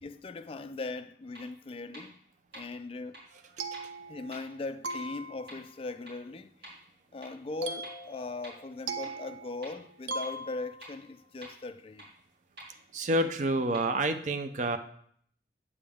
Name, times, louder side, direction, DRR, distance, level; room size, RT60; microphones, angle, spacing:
voice 1, 0.0-2.2 2.5-3.2 4.1-6.7 7.1-12.1, left 3 dB, 30° left, 0.4 m, -39 dB
sound 1, 1.3-1.4 1.9-2.0 2.5-2.6 3.1-3.2 3.7-3.8 4.3-4.4 4.9-5.0 5.5-5.6 6.1-6.2 6.6-6.7 7.2-7.3 7.8-7.9 8.4-8.5 9.0-9.1 9.6-9.7 10.2-10.3 10.8-10.9 11.4-11.5 12.0-12.1 12.6-12.7 13.2-13.3 13.7-13.8, right 1 dB, 60° right, 3.4 m, -47 dB
sound 2, 3.3-4.6 4.8-5.7 7.6-11.0, right 3 dB, 85° right, 0.6 m, -40 dB
voice 2, 12.9-14.8, right 1 dB, 45° right, 0.5 m, -28 dB
8.3 x 7.1 x 3.5 m
head